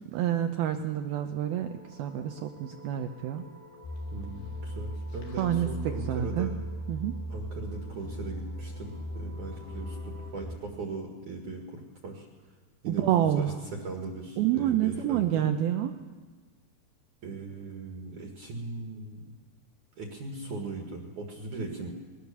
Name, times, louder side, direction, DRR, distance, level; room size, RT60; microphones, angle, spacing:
voice 1, 0.1-3.5 5.4-6.5 6.9-7.1 12.9-13.5 14.4-16.0, right 11 dB, 80° right, 6 dB, 2.2 m, -28 dB
sound 1, 1.4-10.3, left 1 dB, 10° left, 2.5 m, -53 dB
sound 2, 3.8-10.6, right 1 dB, 60° left, 4.1 m, -38 dB
voice 2, 4.1-6.5 7.3-12.3 12.8-13.5 13.8-15.4 17.2-19.3 20.0-21.9, right 3 dB, 55° right, 1 dB, 2.7 m, -39 dB
21.0 x 18.0 x 6.9 m, 1.4 s
omnidirectional pair, 5.2 m